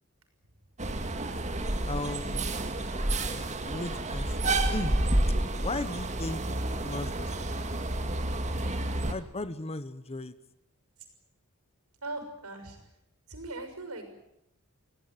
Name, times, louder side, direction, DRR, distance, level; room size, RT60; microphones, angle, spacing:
sound 1, 0.8-9.1, right 1 dB, 30° right, 2.1 m, -30 dB
voice 1, 1.9-2.5 3.6-4.4 4.7-5.0 5.6-6.4 6.8-7.4 9.1-10.3, left 2 dB, 30° left, 13 dB, 1.3 m, -36 dB
voice 2, 12.0-12.8 13.3-14.1, right 2 dB, 80° right, 7 dB, 6.5 m, -40 dB
28.0 x 17.5 x 9.5 m, 0.82 s
head